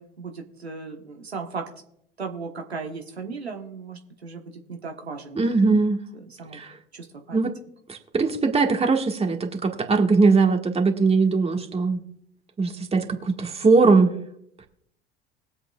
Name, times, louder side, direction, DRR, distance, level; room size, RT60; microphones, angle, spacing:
voice 1, 0.0-1.6 2.2-5.4 6.1-6.6 6.9-7.4, right 4 dB, 90° right, 3 dB, 1.2 m, -36 dB
voice 2, 5.3-6.0 6.5-6.8 7.3-7.6 7.9-12.0 12.6-14.1, right 4 dB, 20° right, 3 dB, 1.7 m, -20 dB
21.0 x 8.0 x 2.4 m, 0.72 s
figure-of-eight pair, 70°, 31 cm